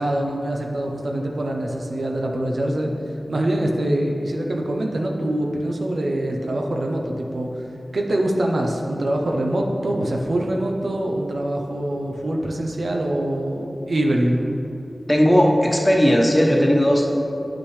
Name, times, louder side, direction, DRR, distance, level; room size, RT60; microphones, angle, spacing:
voice 1, 0.0-2.9 3.3-7.6 7.9-14.5, right 1 dB, 75° right, 0 dB, 0.6 m, -24 dB
voice 2, 15.1-17.1, equal, 20° left, -1 dB, 1.1 m, -16 dB
8.2 x 5.9 x 3.2 m, 2.7 s
cardioid pair, 45°, 0 cm